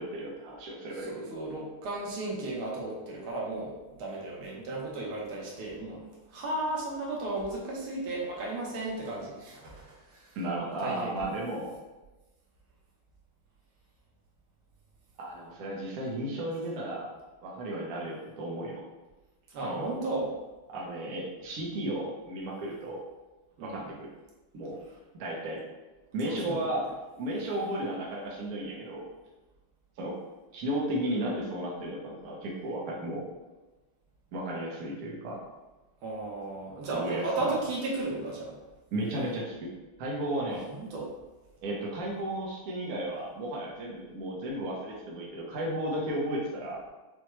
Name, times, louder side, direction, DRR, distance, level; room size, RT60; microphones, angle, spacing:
voice 1, 0.0-1.3 10.4-11.7 15.2-17.1 17.4-18.8 19.6-20.0 20.7-23.0 23.6-24.1 24.5-24.8 25.1-25.6 26.1-26.9 27.2-29.1 30.0-30.2 30.5-33.2 34.3-35.4 36.9-37.5 38.9-39.7 40.0-40.7 41.6-46.8, right 1 dB, 55° right, -3 dB, 1.2 m, -34 dB
voice 2, 0.9-10.4 10.8-11.1 19.5-20.3 23.6-23.9 26.2-26.7 36.0-38.5 40.5-41.1, right 2 dB, 85° right, -3 dB, 1.8 m, -35 dB
6.0 x 2.3 x 3.1 m, 1.2 s
omnidirectional pair, 2.3 m